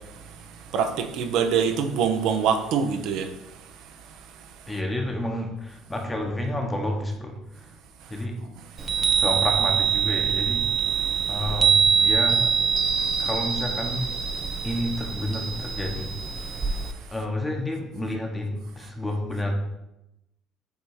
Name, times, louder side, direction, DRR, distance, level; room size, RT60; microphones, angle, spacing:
voice 1, 0.7-3.3, right 7 dB, 75° right, 6 dB, 0.7 m, -24 dB
voice 2, 4.7-7.8 8.1-8.4 9.2-10.9 11.3-12.6 13.2-14.1 14.6-16.1 17.1-19.5, left 1 dB, 10° left, 2 dB, 1.1 m, -30 dB
Chime, 8.8-16.9, right 6 dB, 30° right, 0.6 m, -24 dB
8.0 x 2.8 x 4.8 m, 0.89 s
cardioid pair, 115°, 0 cm